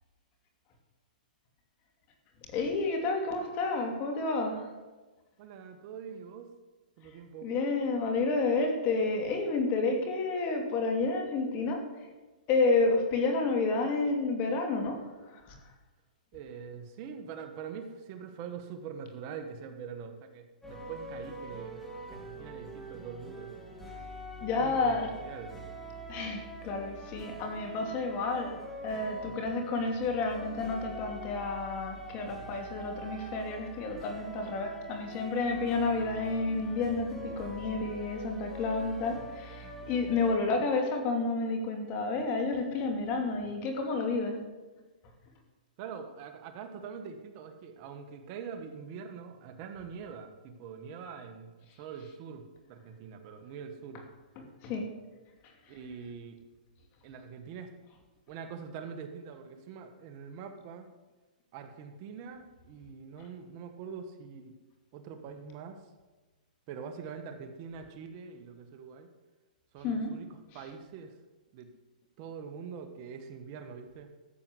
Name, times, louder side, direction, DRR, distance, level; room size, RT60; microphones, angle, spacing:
voice 1, 2.5-4.7 7.4-11.8 12.5-15.0 15.3-15.6 24.4-25.1 26.1-44.4 54.4-54.9 69.8-70.1, left 3 dB, 30° left, 4 dB, 2.8 m, -30 dB
voice 2, 5.4-6.5 7.0-7.5 16.3-23.6 24.5-25.0 25.2-25.6 45.8-54.1 55.7-56.4 57.0-57.7 58.3-60.9 61.5-64.5 64.9-65.8 66.7-69.1 69.7-70.3 70.5-71.1 71.5-71.7 72.2-74.1, right 6 dB, 35° right, 6 dB, 1.5 m, -44 dB
sound 1, 20.6-40.4, right 1 dB, 5° left, 3.2 m, -44 dB
14.0 x 7.8 x 8.0 m, 1.2 s
hypercardioid pair, 145°, 5 cm